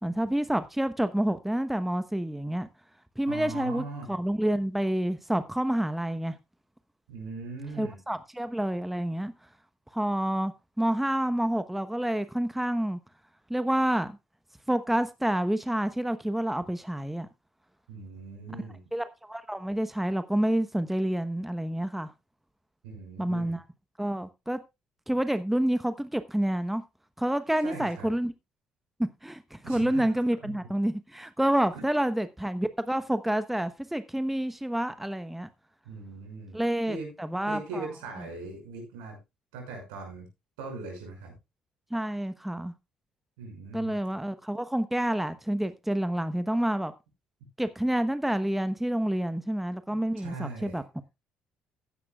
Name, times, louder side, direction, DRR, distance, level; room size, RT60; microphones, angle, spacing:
voice 1, 0.0-2.7 3.2-6.3 7.8-9.3 9.9-10.5 10.8-13.0 13.5-14.1 14.7-17.3 18.9-22.1 23.2-23.6 24.0-24.6 25.1-26.8 27.2-28.3 29.2-35.5 36.5-37.9 41.9-42.7 43.7-46.9 47.6-50.8, right 1 dB, 5° right, 1.0 m, -28 dB
voice 2, 3.3-4.2 7.1-8.0 17.9-18.8 22.8-23.5 27.6-28.1 29.6-30.1 30.4-30.5 31.7-31.9 35.8-36.6 36.9-37.1 37.4-39.2 39.5-40.3 40.6-41.4 43.4-43.9 49.9-50.8, right 3 dB, 75° right, 6.1 m, -40 dB
15.0 x 11.0 x 2.4 m
hypercardioid pair, 50°, 4 cm